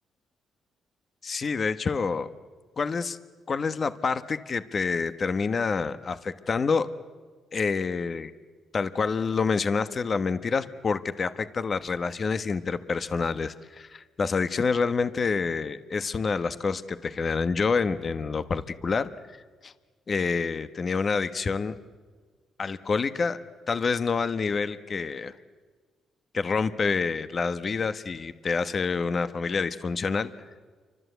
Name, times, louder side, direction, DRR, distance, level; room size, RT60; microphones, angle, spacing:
voice 1, 1.2-2.3 2.8-3.2 3.5-6.9 7.5-8.3 8.7-19.1 19.6-19.7 20.1-21.7 22.6-23.4 23.7-25.3 26.3-30.3, left 5 dB, 40° left, 11 dB, 1.2 m, -27 dB
29.5 x 24.5 x 8.2 m, 1.5 s
cardioid pair, 90°, 0 cm